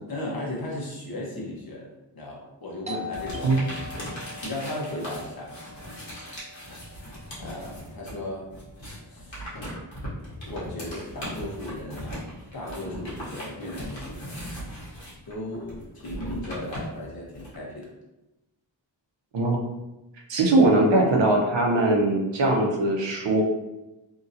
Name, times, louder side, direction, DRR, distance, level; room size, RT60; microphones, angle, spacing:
voice 1, 0.1-3.7 4.1-5.5 6.7-6.8 7.4-8.5 9.0-9.5 10.5-12.2 12.5-14.2 15.3-17.9, left 1 dB, 50° left, -3 dB, 1.1 m, -36 dB
Doorbell, 2.9-8.2, left 3 dB, 15° right, 0.4 m, -42 dB
sound 1, 3.1-8.2 8.5-17.6, equal, 85° left, 1.3 m, -39 dB
voice 2, 20.3-23.4, right 2 dB, 70° right, 0 dB, 0.7 m, -21 dB
2.9 x 2.7 x 2.6 m, 0.99 s
cardioid pair, 50°, 45 cm